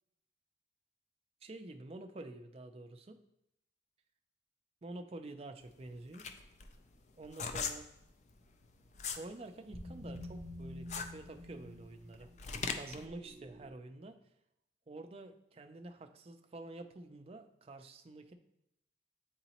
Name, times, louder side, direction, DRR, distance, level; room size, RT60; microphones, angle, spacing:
voice 1, 1.4-3.2 4.8-6.2 7.2-7.9 9.2-12.3 12.7-14.2 14.9-18.3, right 2 dB, 30° right, 6 dB, 0.4 m, -48 dB
sound 1, 5.6-9.3 9.7-13.1, left 5 dB, 40° left, 0.4 m, -40 dB
sound 2, 8.3-13.7, left 1 dB, ahead, 0.7 m, -50 dB
8.7 x 3.9 x 2.9 m, 0.81 s
head